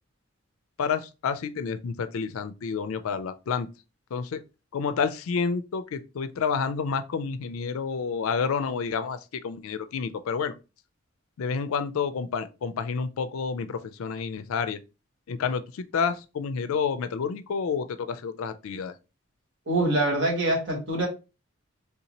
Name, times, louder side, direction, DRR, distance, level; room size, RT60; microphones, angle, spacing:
voice 1, 0.8-3.7 4.1-4.4 4.7-10.5 11.4-14.8 15.3-18.9, left 5 dB, 80° left, 0.4 m, -29 dB
voice 2, 19.7-21.1, right 1 dB, 55° right, 1.4 m, -24 dB
3.4 x 2.7 x 2.9 m
head